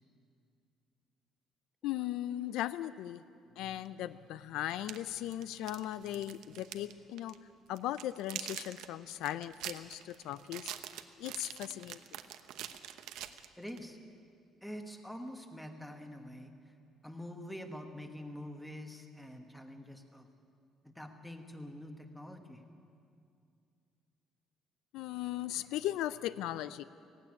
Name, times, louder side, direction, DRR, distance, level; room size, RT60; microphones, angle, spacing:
voice 1, 1.8-3.2 3.6-7.4 7.7-10.7 11.2-12.2 24.9-26.8, left 13 dB, 80° left, 14 dB, 0.5 m, -38 dB
sound 1, 3.8-3.9 4.7-6.9 7.2-7.4 7.8-13.8, right 12 dB, 75° right, 0.9 m, -45 dB
voice 2, 13.6-14.0 14.6-16.7 17.0-20.3 20.8-22.6, equal, ahead, 5 dB, 1.3 m, -46 dB
17.5 x 16.0 x 9.8 m, 2.4 s
cardioid pair, 180°, 0 cm